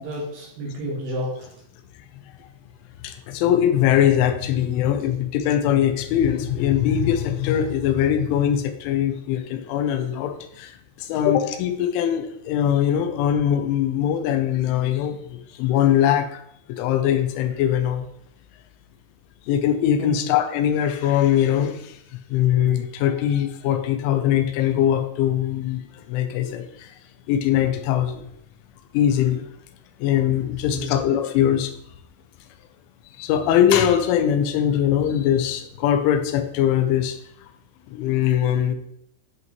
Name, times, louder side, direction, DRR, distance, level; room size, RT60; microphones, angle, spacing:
voice 1, 0.0-1.6 20.0-20.2 30.7-31.0, equal, 65° right, -2 dB, 2.3 m, -31 dB
voice 2, 3.0-16.4 16.8-18.1 19.5-22.0 22.3-26.9 27.3-28.3 28.9-29.5 30.0-31.7 33.2-37.2 37.9-38.8, left 10 dB, 80° left, 7 dB, 3.0 m, -21 dB
10.5 x 5.7 x 3.1 m, 0.72 s
omnidirectional pair, 5.9 m